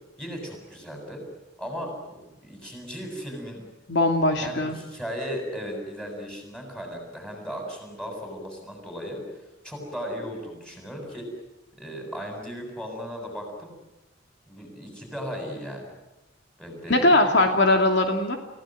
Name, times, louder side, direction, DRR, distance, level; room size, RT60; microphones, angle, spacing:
voice 1, 0.2-1.2 1.6-3.6 4.4-9.2 9.6-11.3 11.8-13.7 14.5-15.9 16.6-17.5, equal, 5° left, 2 dB, 7.7 m, -36 dB
voice 2, 3.9-4.8 16.9-18.4, left 2 dB, 65° left, 4 dB, 2.6 m, -20 dB
29.0 x 17.0 x 9.3 m, 1.0 s
head